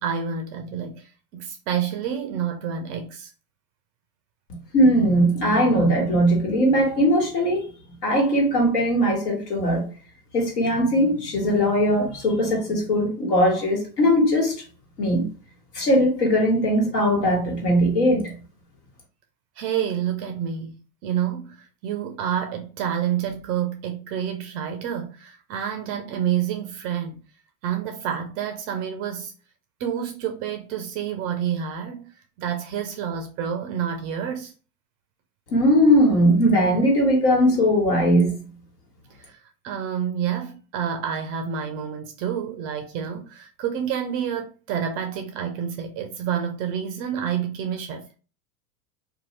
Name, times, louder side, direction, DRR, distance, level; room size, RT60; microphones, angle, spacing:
voice 1, 0.0-3.3 19.6-20.8 21.0-27.2 27.6-29.3 29.8-32.1 32.4-34.5 39.2-39.4 39.6-48.2, right 8 dB, 30° right, 0.4 m, -28 dB
voice 2, 4.7-7.7 8.0-9.8 10.3-14.5 15.0-15.2 15.7-18.3 35.5-38.4, equal, 75° left, 1.6 m, -19 dB
2.6 x 2.4 x 3.1 m
hypercardioid pair, 105°, 47 cm